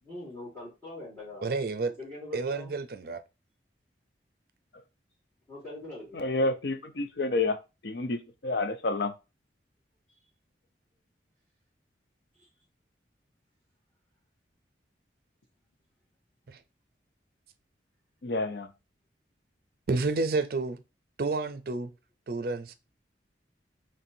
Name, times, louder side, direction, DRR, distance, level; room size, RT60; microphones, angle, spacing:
voice 1, 0.0-1.5 1.8-2.7 5.5-6.3, left 2 dB, 15° left, 2.5 m, -43 dB
voice 2, 1.4-1.9 2.3-3.2 16.5-16.6 19.9-20.8 21.2-21.9 22.3-22.7, right 3 dB, 55° right, 0.5 m, -30 dB
voice 3, 6.1-7.5 7.8-9.1 18.2-18.7, left 2 dB, 65° left, 0.5 m, -29 dB
4.3 x 3.1 x 2.7 m
head